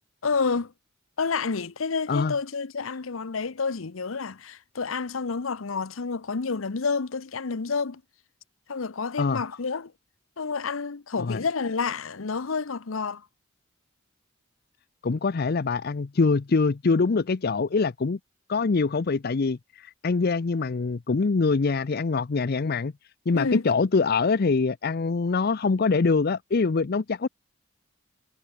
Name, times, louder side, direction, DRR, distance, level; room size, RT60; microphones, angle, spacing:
voice 1, 0.2-0.7 1.2-8.0 8.7-9.9 10.4-13.2 23.3-23.7, left 4 dB, 80° left, 0.8 m, -29 dB
voice 2, 15.0-18.2 18.5-22.9 23.3-27.3, left 4 dB, 50° left, 0.5 m, -24 dB
head